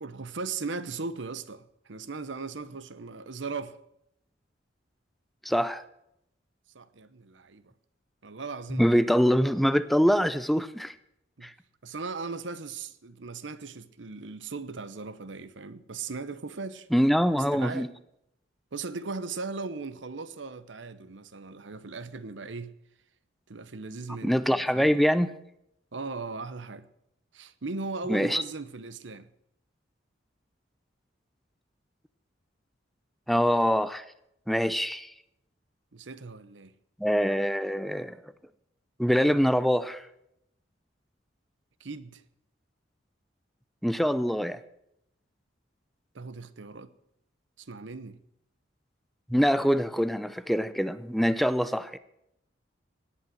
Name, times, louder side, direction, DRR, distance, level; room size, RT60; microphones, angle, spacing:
voice 1, 0.0-3.8 6.7-7.7 8.2-9.2 11.4-11.5 11.8-16.9 17.5-17.9 18.7-22.7 23.5-25.0 25.9-26.9 27.3-29.3 35.9-36.7 41.8-42.2 46.1-46.9 47.6-48.2, right 4 dB, 80° right, 0.9 m, -38 dB
voice 2, 5.4-5.8 8.7-10.9 11.4-11.5 16.9-17.9 24.2-25.3 28.1-28.4 33.3-34.0 34.5-35.1 37.0-38.2 39.0-40.0 43.8-44.6 49.3-52.0, equal, ahead, 0.5 m, -24 dB
18.0 x 8.7 x 7.7 m
head